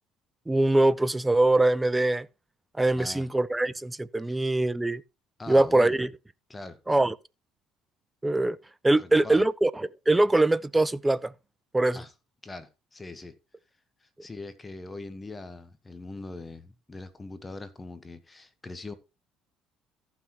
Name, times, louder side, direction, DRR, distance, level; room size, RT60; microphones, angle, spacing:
voice 1, 0.5-2.3 2.8-5.0 5.5-6.1 6.9-7.1 8.2-8.6 8.8-11.3 11.7-12.0, right 2 dB, 15° right, 0.5 m, -23 dB
voice 2, 2.9-3.3 4.2-4.4 5.4-6.0 6.5-6.8 8.9-9.4 11.9-12.1 12.4-13.4 14.0-18.9, left 2 dB, 20° left, 1.3 m, -42 dB
14.5 x 5.9 x 3.1 m
supercardioid pair, 75°, 0 cm